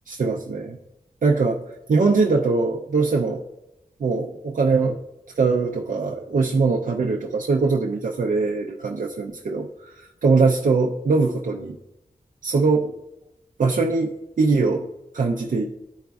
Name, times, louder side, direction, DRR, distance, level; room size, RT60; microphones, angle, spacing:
voice 1, 0.1-0.8 1.2-1.6 1.9-3.4 4.0-5.0 5.4-11.8 12.4-12.9 13.6-15.7, right 4 dB, 65° right, -1 dB, 0.6 m, -22 dB
12.5 x 5.0 x 2.3 m, 0.92 s
wide cardioid pair, 105°, 15 cm